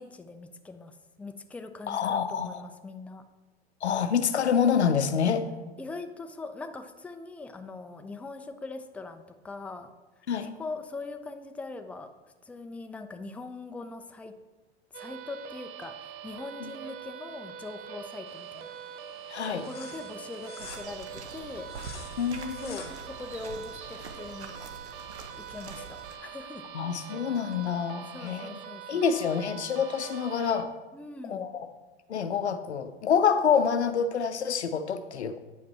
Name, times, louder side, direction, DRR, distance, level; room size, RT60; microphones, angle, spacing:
voice 1, 0.0-3.2 5.8-9.9 10.6-12.1 12.4-14.3 14.9-18.7 19.5-21.7 22.6-24.6 25.4-25.9 26.2-26.6 28.1-29.0 30.9-31.5, left 3 dB, 5° left, 7 dB, 0.5 m, -41 dB
voice 2, 1.9-2.6 3.8-5.5 10.3-10.5 16.6-16.7 19.3-19.7 22.2-22.8 26.7-28.5 28.9-30.7 31.2-31.7 32.1-35.4, left 7 dB, 90° left, 10 dB, 0.6 m, -27 dB
sound 1, 14.9-30.6, right 8 dB, 55° right, 0.9 m, -44 dB
sound 2, 18.3-24.7, left 6 dB, 30° left, 1.6 m, -50 dB
sound 3, 20.6-26.2, right 4 dB, 85° right, 0.9 m, -45 dB
8.8 x 5.1 x 4.2 m, 1.2 s
hypercardioid pair, 90°, 33 cm